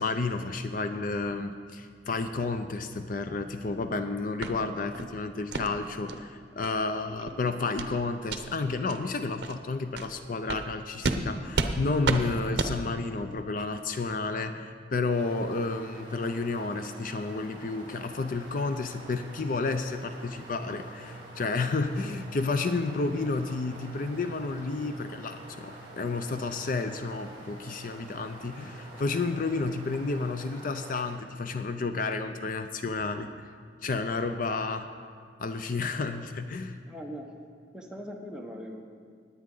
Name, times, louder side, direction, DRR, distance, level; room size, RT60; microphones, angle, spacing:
voice 1, 0.0-33.5 33.8-34.9 35.4-36.8, left 3 dB, 50° left, 8 dB, 0.5 m, -31 dB
sound 1, 4.4-4.5 4.9-5.1 5.5-5.7 6.1-6.2 6.6-6.7 7.1-7.3 7.8-7.9 8.2-8.4 8.9-9.0 9.4-9.5 9.9-10.1 10.5-10.6 11.0-11.2 11.5-11.7 12.0-12.2 12.6-12.7, right 3 dB, 70° right, 0.7 m, -30 dB
sound 2, 15.1-31.1, right 1 dB, 30° right, 3.1 m, -48 dB
sound 3, 20.4-29.8, right 3 dB, 20° left, 0.9 m, -51 dB
voice 2, 36.9-37.3 37.7-38.8, equal, 5° right, 0 dB, 1.0 m, -40 dB
19.5 x 8.6 x 3.8 m, 2.2 s
head